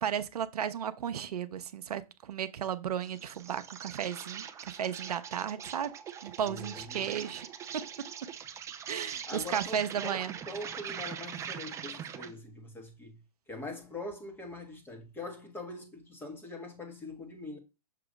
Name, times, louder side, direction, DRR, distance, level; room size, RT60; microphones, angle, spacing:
voice 1, 0.0-5.9 6.2-7.5 8.9-10.3, right 9 dB, 80° right, 0.7 m, -34 dB
Insect, 3.0-12.4, right 8 dB, 15° right, 0.5 m, -42 dB
voice 2, 6.4-7.1 9.3-13.2 13.5-17.6, left 2 dB, 10° left, 1.4 m, -42 dB
6.8 x 3.0 x 5.0 m
hypercardioid pair, 135°, 20 cm